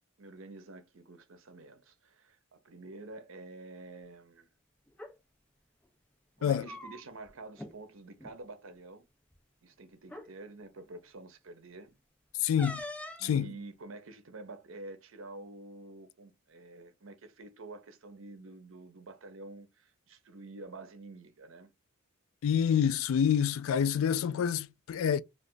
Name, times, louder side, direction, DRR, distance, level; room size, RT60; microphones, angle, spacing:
voice 1, 0.2-4.5 6.4-9.1 9.6-12.0 13.2-21.7, right 2 dB, 75° right, 0.7 m, -48 dB
sound 1, 4.9-5.1 6.4-7.3 7.6-7.7 8.1-8.3 9.3-9.4 10.0-10.3 12.6-13.3, left 1 dB, 5° left, 0.4 m, -43 dB
voice 2, 12.4-12.8 13.2-13.5 22.4-25.2, left 8 dB, 80° left, 0.3 m, -27 dB
2.5 x 2.4 x 3.7 m
head